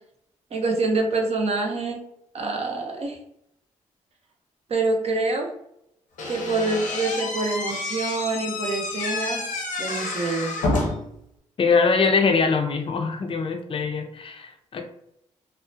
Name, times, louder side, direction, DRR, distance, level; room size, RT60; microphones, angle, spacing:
voice 1, 0.5-2.0 2.3-3.2 4.7-5.5 6.3-9.5 9.8-10.6, right 3 dB, 50° right, 2 dB, 0.6 m, -26 dB
Slam / Squeak, 6.2-11.2, left 3 dB, 80° left, 0.7 m, -29 dB
voice 2, 11.6-14.8, left 4 dB, 40° left, 4 dB, 0.5 m, -22 dB
2.4 x 2.1 x 2.6 m, 0.76 s
supercardioid pair, 60°, 14 cm